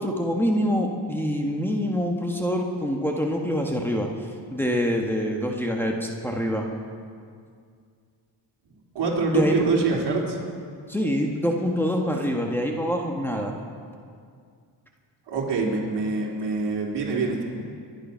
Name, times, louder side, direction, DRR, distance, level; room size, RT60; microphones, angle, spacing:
voice 1, 0.0-4.1 4.5-6.7 9.3-9.6 10.9-13.5, equal, 5° left, 0 dB, 1.6 m, -25 dB
voice 2, 8.9-10.4 15.3-17.4, right 3 dB, 65° right, -2 dB, 3.4 m, -25 dB
23.5 x 10.5 x 5.7 m, 2.2 s
cardioid pair, 100°, 44 cm